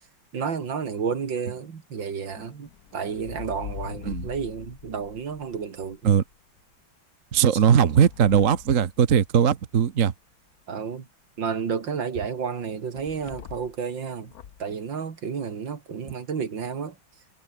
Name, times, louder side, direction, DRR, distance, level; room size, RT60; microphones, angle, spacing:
voice 1, 0.3-6.2 7.5-7.6 10.7-11.1 11.4-14.3 14.6-17.0, right 6 dB, 70° right, 2.9 m, -31 dB
sound 1, 2.3-6.4 7.3-9.7 13.0-13.8 14.2-14.7, left 9 dB, 55° left, 1.4 m, -43 dB
voice 2, 7.3-10.1, right 8 dB, 45° right, 1.4 m, -19 dB
omnidirectional pair, 2.1 m